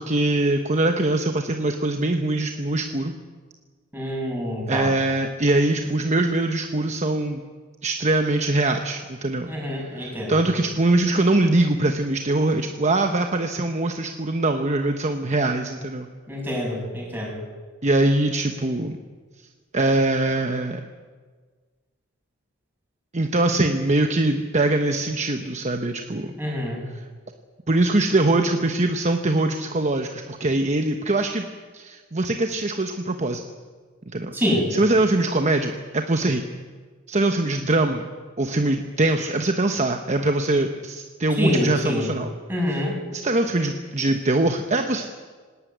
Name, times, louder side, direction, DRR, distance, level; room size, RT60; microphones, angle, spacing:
voice 1, 0.0-3.1 4.7-7.4 7.8-9.5 9.9-16.1 17.8-19.0 19.7-20.8 23.1-26.3 26.9-27.0 27.7-31.4 31.7-33.4 34.1-34.3 34.7-36.4 37.1-38.1 38.4-42.3 42.7-42.8 43.1-45.0, right 2 dB, 35° right, 5 dB, 1.0 m, -22 dB
voice 2, 3.9-4.9 9.5-10.4 16.3-17.4 26.4-26.8 34.3-34.7 41.4-42.1 42.5-43.0, left 1 dB, 10° right, -3 dB, 7.2 m, -26 dB
19.0 x 18.0 x 9.4 m, 1.5 s
head